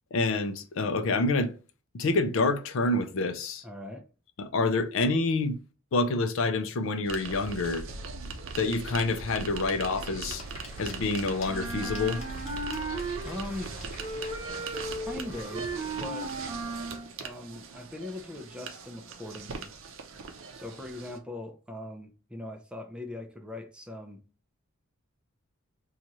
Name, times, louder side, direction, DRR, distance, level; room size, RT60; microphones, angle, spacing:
voice 1, 0.1-1.5 1.9-3.6 4.4-5.6 5.9-7.9 8.6-10.4 10.8-12.2, left 3 dB, 65° left, 0.5 m, -27 dB
voice 2, 3.6-4.1 13.2-13.7 15.1-16.3 17.2-19.7 20.5-24.2, left 1 dB, 5° right, 0.4 m, -40 dB
sound 1, 7.1-21.2, right 4 dB, 65° right, 0.6 m, -40 dB
Applause / Crowd, 8.8-17.9, left 1 dB, 30° left, 0.9 m, -50 dB
Wind instrument woodwind instrument, 11.5-13.7 14.0-17.1, right 2 dB, 20° right, 0.9 m, -36 dB
3.0 x 2.4 x 4.0 m
head